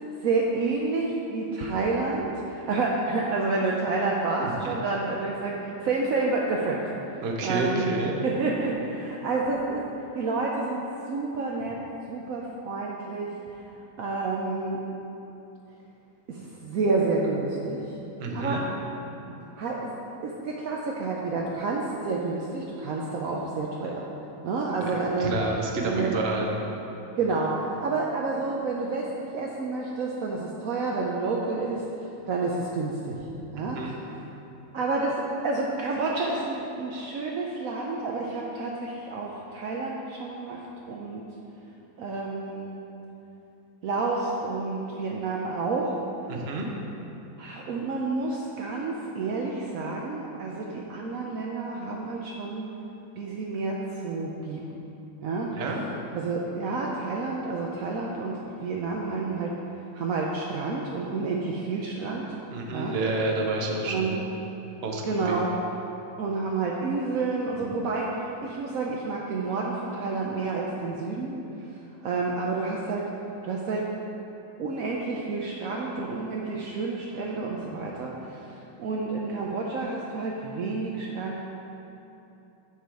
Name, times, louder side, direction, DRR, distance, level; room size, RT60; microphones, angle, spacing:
voice 1, 0.2-6.8 7.4-7.9 8.2-9.8 10.1-11.8 12.1-13.3 14.0-14.8 16.3-17.8 18.3-18.7 19.6-19.9 20.2-24.0 24.4-25.3 25.8-26.1 27.2-33.3 33.5-33.9 34.7-41.2 42.0-42.8 43.8-46.0 47.4-52.6 53.2-54.7 55.2-55.5 56.1-59.5 59.9-62.3 62.7-63.0 63.9-64.2 65.0-65.6 66.2-71.4 72.0-73.1 73.4-73.9 74.6-81.4, right 3 dB, 75° right, -2 dB, 0.8 m, -29 dB
voice 2, 4.4-4.7 7.2-8.2 18.2-18.6 24.8-24.9 25.2-26.5 33.6-33.9 46.3-46.7 55.5-55.8 62.5-64.2 64.8-65.3, right 2 dB, 45° right, 0 dB, 0.8 m, -29 dB
7.6 x 7.1 x 4.8 m, 3.0 s
omnidirectional pair, 2.2 m